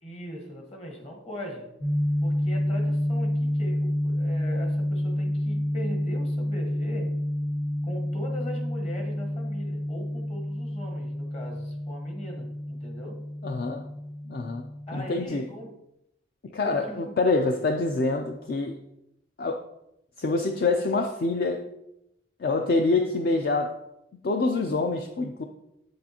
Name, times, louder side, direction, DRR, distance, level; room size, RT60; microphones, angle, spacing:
voice 1, 0.0-1.7 2.2-7.2 7.8-13.3 14.9-15.8 16.5-17.1, equal, 35° left, 1.2 m, -40 dB
sound 1, 1.8-15.2, left 1 dB, 80° left, 2.0 m, -29 dB
voice 2, 13.4-13.9 14.3-15.4 16.5-18.8 19.4-19.7 20.2-21.7 22.4-23.8 24.2-25.4, left 3 dB, 55° left, 0.4 m, -26 dB
8.2 x 6.5 x 2.9 m
head